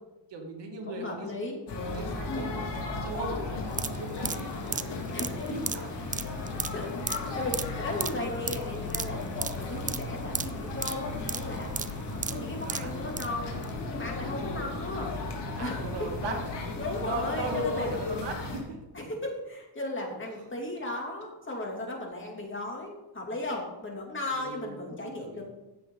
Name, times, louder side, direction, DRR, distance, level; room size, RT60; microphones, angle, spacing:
voice 1, 0.3-1.3 1.9-4.8 5.5-6.2 11.9-12.2 12.7-13.2 14.2-14.4 15.6-18.8 24.2-25.4, right 2 dB, 65° right, 2 dB, 2.3 m, -38 dB
voice 2, 0.9-1.6 2.3-2.5 5.1-5.6 6.7-11.7 12.1-13.6 13.9-15.2 15.6-16.1 16.8-17.9 18.9-25.4, left 2 dB, 25° left, 0 dB, 3.1 m, -36 dB
sound 1, 1.7-18.6, left 3 dB, 65° left, 3.0 m, -35 dB
sound 2, 3.7-13.3 13.6-13.7, right 5 dB, 20° right, 0.4 m, -36 dB
15.5 x 7.5 x 4.1 m, 1.0 s
cardioid pair, 95°, 45 cm